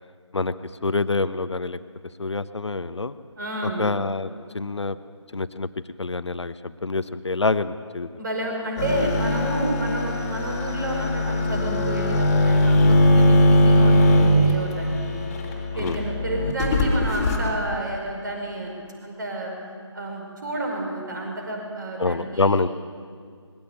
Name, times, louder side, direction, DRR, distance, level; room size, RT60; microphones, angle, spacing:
voice 1, 0.8-1.8 2.2-3.2 3.8-5.0 5.3-5.7 6.0-8.1 15.8-16.0 22.0-22.7, left 3 dB, 65° left, 12 dB, 0.9 m, -26 dB
voice 2, 3.4-3.8 8.2-15.3 15.7-18.7 19.0-19.5 19.9-22.6, right 1 dB, 40° right, 1 dB, 5.2 m, -30 dB
sound 1, 8.8-17.4, left 1 dB, 15° left, 2.4 m, -20 dB
20.5 x 16.0 x 9.0 m, 2.1 s
figure-of-eight pair, 160°, 16 cm